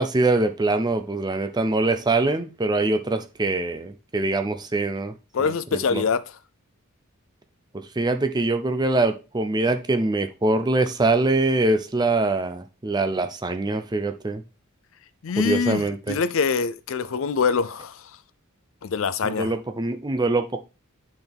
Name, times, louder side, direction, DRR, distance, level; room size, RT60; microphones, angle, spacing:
voice 1, 0.0-5.1 5.4-6.0 7.7-14.4 15.4-16.2 19.2-20.6, right 2 dB, 20° right, 0.5 m, -24 dB
voice 2, 5.3-6.2 15.2-18.0 18.8-19.5, left 5 dB, 65° left, 0.5 m, -24 dB
9.3 x 4.0 x 3.5 m
head